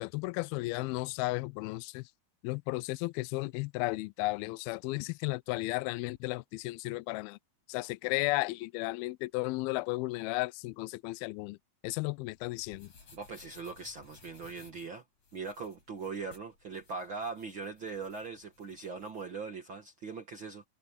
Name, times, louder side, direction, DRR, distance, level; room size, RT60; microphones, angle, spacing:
voice 1, 0.0-2.0 2.4-7.4 7.7-11.6 11.8-12.9, left 22 dB, 85° left, 2.2 m, -34 dB
sound 1, 12.2-19.3, left 4 dB, 40° left, 6.4 m, -59 dB
voice 2, 13.1-15.0 15.3-20.6, right 4 dB, 75° right, 1.1 m, -40 dB
omnidirectional pair, 4.8 m